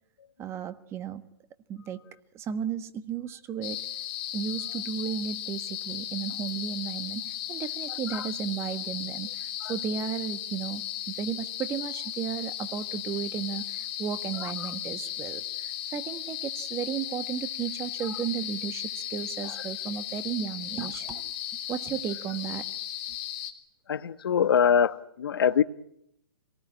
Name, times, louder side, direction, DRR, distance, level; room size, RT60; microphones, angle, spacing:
voice 1, 0.4-1.2 1.7-2.0 2.3-3.9 4.3-21.3 21.7-22.6, right 8 dB, 20° right, 12 dB, 1.4 m, -34 dB
sound 1, 3.6-23.5, left 11 dB, 35° left, 2.8 m, -36 dB
voice 2, 7.9-8.3 9.6-9.7 14.4-14.7 18.0-18.2 19.4-19.7 23.9-25.6, left 7 dB, 65° left, 14 dB, 1.3 m, -25 dB
26.0 x 19.0 x 10.0 m, 0.77 s
hypercardioid pair, 130°, 13 cm